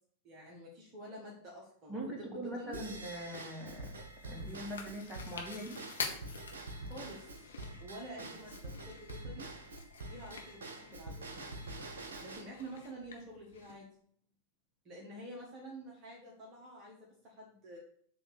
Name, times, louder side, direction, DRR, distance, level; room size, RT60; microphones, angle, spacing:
voice 1, 0.2-2.8 6.7-7.5 7.8-9.5 10.1-11.3 12.2-13.9 14.9-17.8, right 1 dB, 35° right, -2 dB, 1.7 m, -48 dB
voice 2, 1.9-4.0 4.2-5.8, right 1 dB, 15° right, -1 dB, 2.3 m, -42 dB
Drum kit / Drum / Bell, 2.7-12.4, right 2 dB, 65° right, 1.1 m, -46 dB
Chewing mastication, 4.0-13.8, left 5 dB, 70° left, 1.1 m, -48 dB
7.7 x 3.8 x 6.7 m, 0.63 s
figure-of-eight pair, 90°, 0 cm